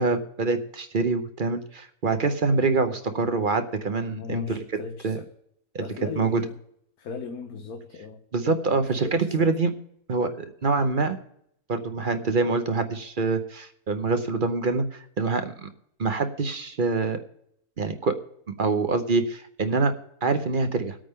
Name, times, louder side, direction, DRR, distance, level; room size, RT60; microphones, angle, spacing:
voice 1, 0.0-4.6 5.0-5.2 5.7-5.8 6.2-6.4 8.3-9.7 10.1-11.2 11.7-15.7 16.0-17.2 17.8-18.2 18.5-19.9 20.2-21.0, right 3 dB, 40° right, 8 dB, 0.9 m, -25 dB
voice 2, 2.5-3.2 4.1-5.3 5.8-6.6 7.0-8.2 8.7-9.5, left 5 dB, 85° left, 4 dB, 1.6 m, -38 dB
21.0 x 8.8 x 3.6 m, 0.71 s
omnidirectional pair, 1.5 m